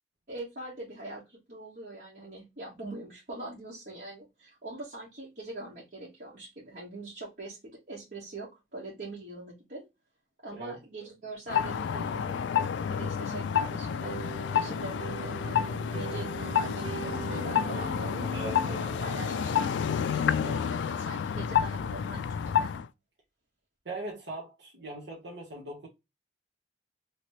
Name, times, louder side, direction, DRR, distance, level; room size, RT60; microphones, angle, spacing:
voice 1, 0.3-9.8 10.4-12.4 12.8-14.2 14.5-18.3 18.6-22.7, right 2 dB, 50° right, 1.2 m, -43 dB
voice 2, 10.5-10.8 18.3-18.9 23.8-25.9, right 2 dB, 70° right, 1.0 m, -40 dB
sound 1, 11.5-22.9, left 8 dB, 80° left, 0.3 m, -30 dB
sound 2, 13.8-19.6, right 4 dB, 90° right, 1.5 m, -41 dB
2.9 x 2.9 x 2.9 m
head